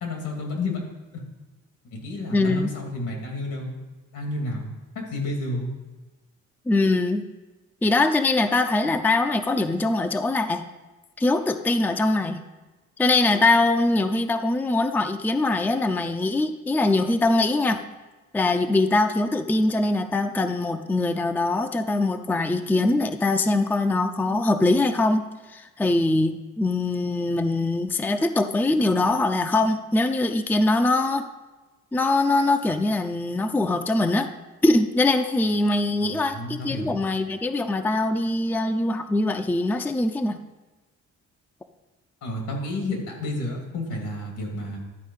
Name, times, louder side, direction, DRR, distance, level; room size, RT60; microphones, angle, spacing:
voice 1, 0.0-0.8 1.1-1.2 1.9-3.7 4.1-4.7 4.9-5.7 36.0-36.9 42.2-44.8, left 2 dB, 80° left, 1 dB, 2.5 m, -30 dB
voice 2, 2.3-2.7 6.7-7.2 7.8-10.6 11.2-12.4 13.0-17.8 18.3-25.2 25.5-31.3 31.9-34.3 34.6-40.4, left 2 dB, 5° left, 7 dB, 0.4 m, -22 dB
11.5 x 4.5 x 5.5 m, 1.2 s
cardioid pair, 90°, 30 cm